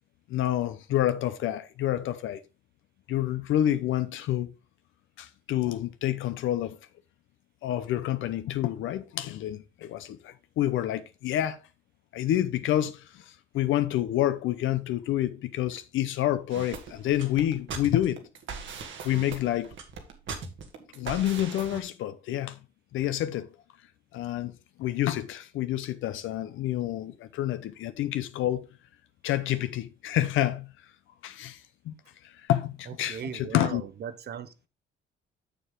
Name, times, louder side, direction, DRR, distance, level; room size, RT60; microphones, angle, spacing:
voice 1, 0.3-2.4 3.1-4.5 5.2-6.8 7.6-11.6 12.1-18.2 19.0-19.7 20.9-22.6 22.9-23.5 24.1-24.5 24.8-28.6 29.2-30.7 31.2-31.9 32.2-33.8, left 12 dB, 80° left, 0.7 m, -28 dB
sound 1, 16.5-21.8, right 5 dB, 75° right, 1.8 m, -40 dB
voice 2, 32.9-34.5, right 8 dB, 55° right, 1.0 m, -38 dB
6.9 x 6.9 x 3.7 m
cardioid pair, 90°, 20 cm